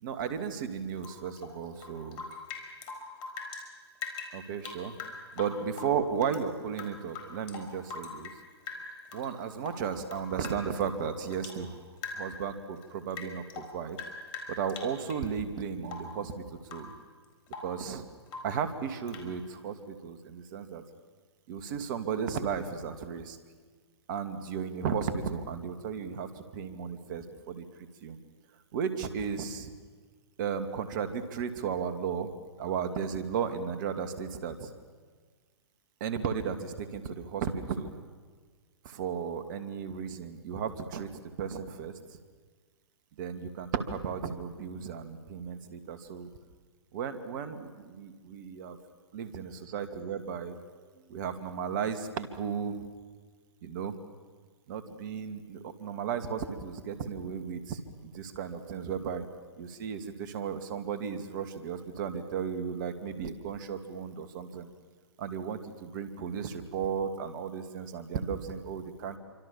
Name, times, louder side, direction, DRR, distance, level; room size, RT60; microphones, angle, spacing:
voice 1, 0.0-2.2 4.3-4.9 5.4-8.3 9.1-11.9 12.2-14.0 14.6-16.9 17.6-18.0 18.4-20.8 21.5-23.4 24.1-27.6 28.0-28.2 28.7-29.7 30.4-32.3 32.6-34.7 36.0-37.9 38.8-41.1 41.4-41.9 43.2-46.3 46.9-48.8 49.1-52.8 53.6-53.9 54.7-59.2 59.6-64.7 65.2-69.2, right 7 dB, 45° right, 9 dB, 2.6 m, -35 dB
Rain / Drip, 1.0-3.7 4.0-6.4 6.7-8.4 8.7-9.3 9.6-11.6 12.0-12.4 12.8-15.3 15.9-16.2 16.6-17.0 17.2-17.8 18.3-18.6 19.1-19.3, left 4 dB, 35° left, 5.0 m, -42 dB
28.0 x 25.0 x 7.3 m, 1.5 s
figure-of-eight pair, 115°, 14 cm